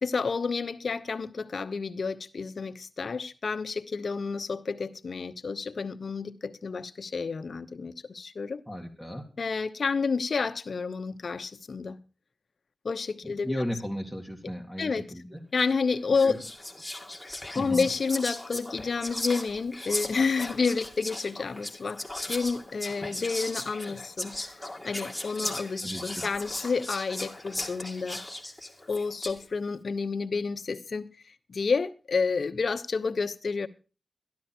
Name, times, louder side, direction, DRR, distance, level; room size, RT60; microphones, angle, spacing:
voice 1, 0.0-8.6 9.4-12.0 12.8-13.5 14.8-15.0 15.5-16.4 17.5-24.5 24.8-28.2 28.9-31.1 31.5-33.7, left 4 dB, 60° left, 1.0 m, -30 dB
voice 2, 8.7-9.3 13.2-15.4 16.2-16.4 17.5-17.9 25.8-26.2, equal, 10° right, 2.3 m, -35 dB
Whispering, 15.6-15.8 16.2-29.4, left 1 dB, 10° left, 2.1 m, -37 dB
13.5 x 12.0 x 4.4 m
wide cardioid pair, 85°, 0 cm